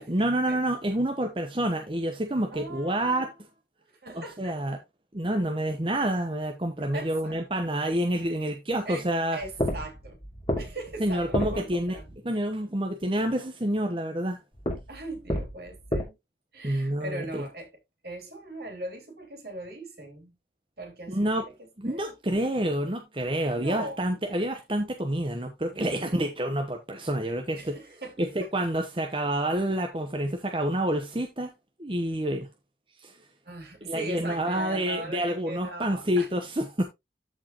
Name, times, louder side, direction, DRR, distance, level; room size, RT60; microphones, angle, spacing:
voice 1, 0.0-3.4 4.1-4.8 5.1-9.4 11.0-12.0 12.2-14.4 16.6-17.4 21.1-21.4 21.8-27.7 28.2-31.5 31.8-32.5 33.0-33.1 33.9-36.8, right 1 dB, 30° right, 1.0 m, -28 dB
voice 2, 2.5-3.3 4.0-4.8 6.8-7.4 8.8-10.2 10.6-12.2 14.9-16.2 16.5-17.7 18.0-20.4 20.8-21.6 21.8-22.1 23.5-24.0 25.7-26.3 27.5-28.1 28.4-28.5 33.4-36.3, right 1 dB, 60° right, 3.1 m, -40 dB
sound 1, 9.4-12.2 14.5-16.0, equal, 30° left, 2.9 m, -31 dB
13.5 x 4.7 x 2.9 m
head